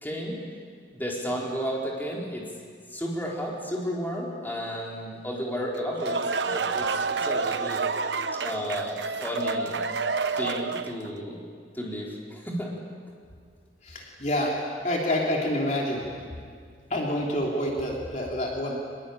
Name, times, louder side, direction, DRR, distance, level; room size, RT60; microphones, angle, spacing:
voice 1, 0.0-0.4 0.9-2.4 2.9-7.8 8.3-9.8 10.3-11.4 11.7-12.8, equal, 10° left, -3 dB, 4.3 m, -32 dB
sound 1, 5.7-11.1, right 4 dB, 85° right, 1.0 m, -29 dB
voice 2, 13.8-14.5 14.8-16.2 16.9-18.8, left 1 dB, 45° left, -2 dB, 3.2 m, -27 dB
23.5 x 21.5 x 8.9 m, 2.1 s
head